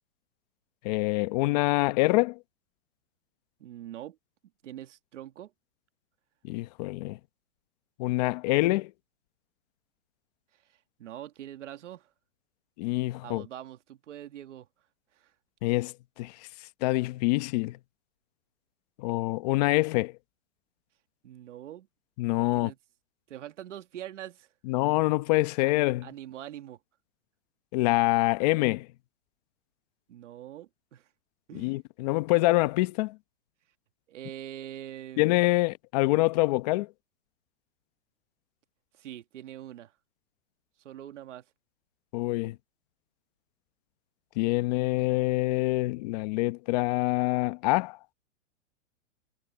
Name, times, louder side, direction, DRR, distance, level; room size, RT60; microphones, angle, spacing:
voice 1, 0.8-2.4 6.4-7.2 8.0-8.9 12.8-13.4 15.6-16.3 16.8-17.8 19.0-20.1 22.2-22.7 24.7-26.1 27.7-28.9 31.5-33.2 35.2-36.9 42.1-42.5 44.4-48.0, left 21 dB, 30° left, 0.9 m, -25 dB
voice 2, 3.6-4.2 4.6-5.5 11.0-12.1 13.2-14.7 15.2-15.3 21.2-21.9 22.4-22.8 23.3-24.5 25.6-25.7 26.0-26.8 30.1-31.1 31.5-31.8 34.1-35.4 39.0-39.9 40.8-41.4, right 12 dB, 70° right, 2.1 m, -43 dB
hypercardioid pair, 155°, 38 cm